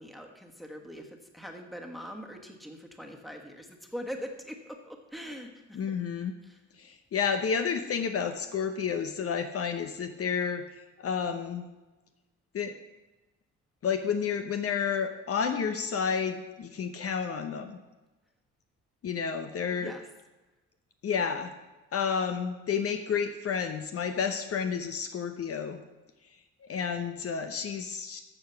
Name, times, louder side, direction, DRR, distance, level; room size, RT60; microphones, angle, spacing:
voice 1, 0.0-6.0 6.4-6.6 19.7-20.0, equal, ahead, 2 dB, 1.5 m, -42 dB
voice 2, 5.7-6.3 6.8-11.7 12.5-12.7 13.8-17.8 19.0-19.9 21.0-21.5 21.9-25.8 26.2-28.2, left 6 dB, 50° left, 7 dB, 0.8 m, -31 dB
14.0 x 4.9 x 5.8 m, 1.1 s
cardioid pair, 90°, 30 cm